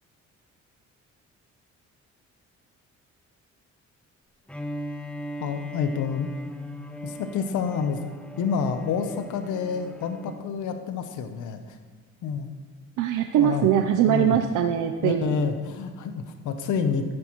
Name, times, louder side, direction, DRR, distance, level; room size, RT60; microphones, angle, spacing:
Bowed string instrument, 4.5-10.5, equal, 5° left, 0.8 m, -39 dB
voice 1, 5.4-6.3 7.0-8.0 8.4-11.8 12.2-12.5 13.3-13.7 14.1-14.4 15.0-17.0, left 6 dB, 80° left, 8 dB, 0.8 m, -28 dB
voice 2, 13.0-15.5, right 10 dB, 80° right, 6 dB, 0.6 m, -22 dB
14.0 x 9.6 x 3.0 m, 1.5 s
cardioid pair, 90°, 30 cm